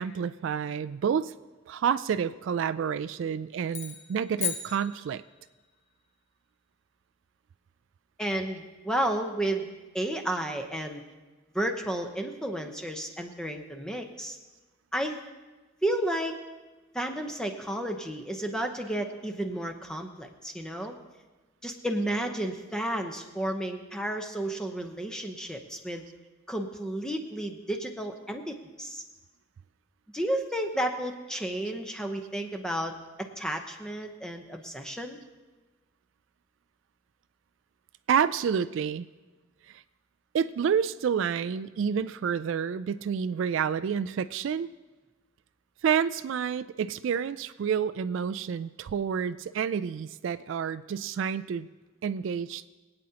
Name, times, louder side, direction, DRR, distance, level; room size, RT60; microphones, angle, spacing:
voice 1, 0.0-1.3 1.7-5.2 38.1-39.1 40.3-44.7 45.8-51.7 52.0-52.7, right 7 dB, 70° right, 14 dB, 0.3 m, -29 dB
sound 1, 3.7-5.6, left 7 dB, 35° left, 1.1 m, -36 dB
voice 2, 8.2-9.7 9.9-11.0 11.5-14.4 14.9-15.2 15.8-16.4 16.9-20.9 21.6-26.0 26.5-29.0 30.1-35.2, right 1 dB, 5° left, 4 dB, 0.8 m, -32 dB
22.5 x 8.8 x 2.9 m, 1.2 s
head